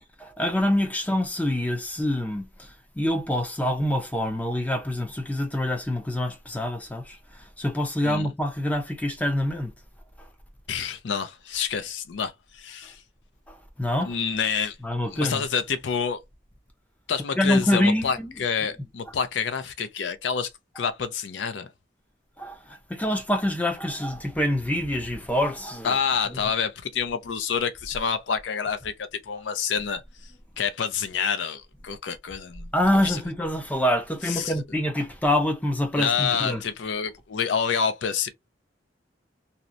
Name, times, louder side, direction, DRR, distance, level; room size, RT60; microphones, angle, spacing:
voice 1, 0.2-9.7 10.2-10.3 13.5-14.2 14.8-15.4 17.4-18.3 22.4-26.0 26.3-26.4 32.7-36.6, left 1 dB, 10° left, 0.5 m, -26 dB
voice 2, 10.7-13.0 14.0-14.8 15.1-16.2 17.1-20.5 20.8-21.7 25.8-28.9 29.2-30.3 30.6-32.7 33.0-33.2 34.2-34.5 35.9-38.3, left 6 dB, 70° left, 0.4 m, -28 dB
2.7 x 2.0 x 2.4 m
head